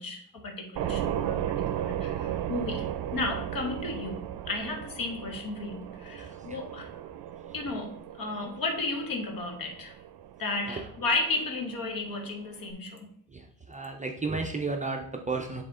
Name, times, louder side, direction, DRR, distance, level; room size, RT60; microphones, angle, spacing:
voice 1, 0.0-6.9 7.5-9.9 10.4-13.1, left 3 dB, 55° left, 3 dB, 1.4 m, -34 dB
sound 1, 0.7-12.7, right 11 dB, 80° right, 0.5 m, -36 dB
voice 2, 6.0-6.6 10.7-10.8 13.3-15.6, right 3 dB, 20° right, 2 dB, 0.4 m, -34 dB
7.6 x 3.6 x 3.6 m, 0.62 s
wide cardioid pair, 155°, 39 cm